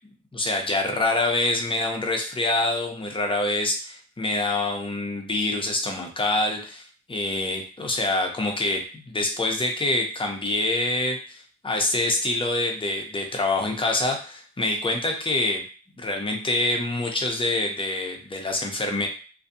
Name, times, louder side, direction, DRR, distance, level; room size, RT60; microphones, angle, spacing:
voice 1, 0.3-15.6 16.0-19.1, left 2 dB, 15° left, 2 dB, 0.7 m, -26 dB
2.6 x 2.3 x 2.6 m, 0.38 s
cardioid pair, 90°, 30 cm